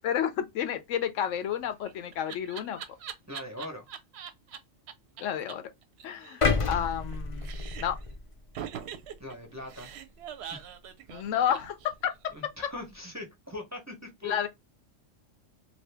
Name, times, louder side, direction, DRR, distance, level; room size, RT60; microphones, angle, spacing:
voice 1, 0.0-2.8 5.2-5.6 6.0-7.5 7.8-8.0 11.1-11.8 12.0-12.1 14.2-14.5, left 9 dB, 85° left, 1.0 m, -30 dB
Laughter, 1.5-4.6 4.9-5.0 5.2-5.3 5.5-5.6 5.8-7.1 7.4-8.0 8.5-12.3, right 8 dB, 65° right, 0.8 m, -42 dB
voice 2, 3.3-3.9 9.2-9.9 10.5-10.7 12.3-14.4, left 2 dB, 15° right, 0.6 m, -41 dB
sound 1, 6.4-8.6 9.0-9.2, left 4 dB, 40° left, 0.4 m, -29 dB
2.7 x 2.6 x 3.3 m
omnidirectional pair, 1.3 m